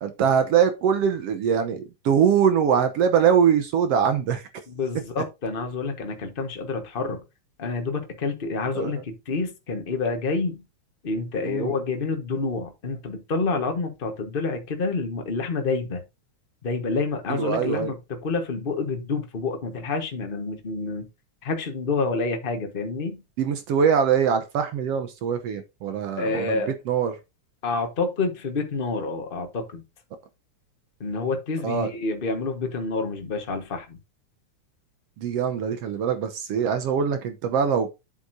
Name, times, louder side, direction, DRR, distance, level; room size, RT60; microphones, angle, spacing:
voice 1, 0.0-4.5 8.7-8.9 11.4-11.7 17.3-17.9 23.4-26.6 26.9-27.2 31.6-31.9 35.2-37.9, right 7 dB, 65° right, 1.7 m, -23 dB
voice 2, 4.7-7.2 7.6-10.6 11.0-16.0 16.6-21.1 21.4-23.2 26.2-26.7 27.6-29.8 31.0-34.0, left 3 dB, 50° left, 0.6 m, -28 dB
8.4 x 7.8 x 2.7 m
omnidirectional pair, 3.4 m